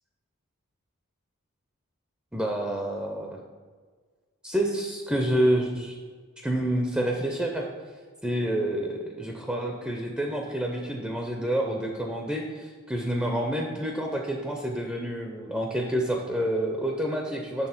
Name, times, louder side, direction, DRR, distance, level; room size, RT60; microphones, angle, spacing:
voice 1, 2.3-3.4 4.4-6.0 6.4-7.7 8.2-17.7, right 1 dB, 5° right, 1 dB, 0.5 m, -28 dB
6.6 x 3.7 x 5.8 m, 1.5 s
head